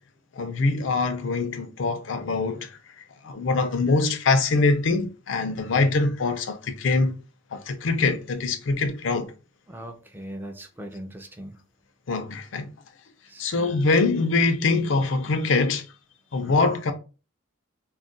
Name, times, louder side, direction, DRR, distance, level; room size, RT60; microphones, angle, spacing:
voice 1, 0.3-2.7 3.2-7.2 7.5-9.3 12.1-12.7 13.4-15.8 16.3-16.9, left 3 dB, 75° left, 0.5 m, -23 dB
voice 2, 9.7-11.6 13.3-13.8 16.4-16.7, right 1 dB, 10° right, 0.3 m, -39 dB
2.3 x 2.1 x 3.8 m
head